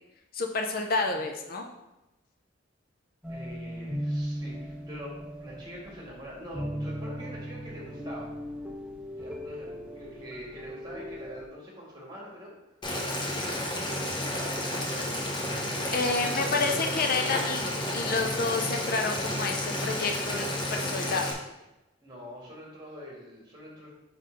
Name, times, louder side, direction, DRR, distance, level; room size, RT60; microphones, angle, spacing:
voice 1, 0.3-1.7 15.9-21.3, left 3 dB, 45° left, 4 dB, 0.5 m, -29 dB
sound 1, 3.2-11.4, equal, 5° right, 0.6 m, -37 dB
voice 2, 3.3-8.3 9.1-12.5 12.9-15.5 16.1-17.1 22.0-23.9, equal, 20° right, -4 dB, 1.8 m, -44 dB
Boiling, 12.8-21.3, left 1 dB, 25° left, 0.9 m, -31 dB
5.1 x 4.2 x 5.0 m, 0.98 s
head